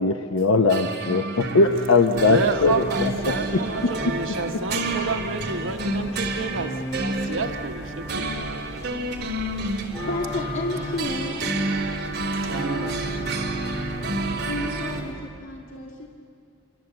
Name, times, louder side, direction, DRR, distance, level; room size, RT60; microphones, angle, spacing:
voice 1, 0.0-2.8 3.3-3.4, left 3 dB, 85° left, 0.9 m, -20 dB
sound 1, 0.7-15.0, right 2 dB, 50° right, 3.1 m, -30 dB
sound 2, 2.1-15.1, equal, 15° left, 4.6 m, -36 dB
voice 2, 2.1-8.6 12.3-13.0, right 4 dB, 75° right, 1.2 m, -30 dB
voice 3, 10.0-11.7 14.4-16.1, left 2 dB, 70° left, 2.1 m, -32 dB
28.0 x 24.0 x 7.9 m
head